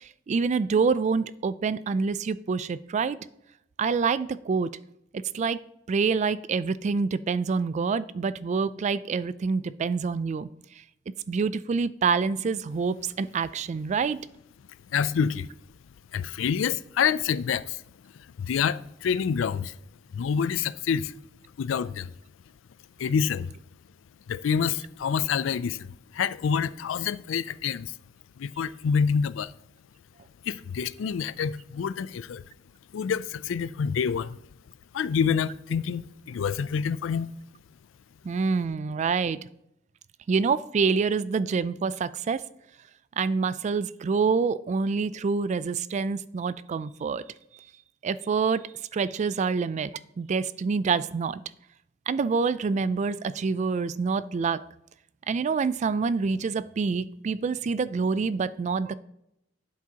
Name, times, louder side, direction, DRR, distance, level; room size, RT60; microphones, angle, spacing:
voice 1, 0.0-3.2 3.8-4.7 5.1-5.6 5.9-10.5 11.1-14.2 38.2-39.4 40.3-42.4 43.2-47.2 48.0-51.4 52.1-54.6 55.3-59.0, right 5 dB, 40° right, 0.3 m, -26 dB
voice 2, 14.9-15.5 16.1-18.1 18.4-19.7 20.1-21.1 21.6-22.1 23.0-23.5 24.3-27.9 28.4-29.5 30.5-32.4 32.9-34.4 34.9-37.3, left 7 dB, 90° left, 0.4 m, -27 dB
11.5 x 7.5 x 2.9 m
head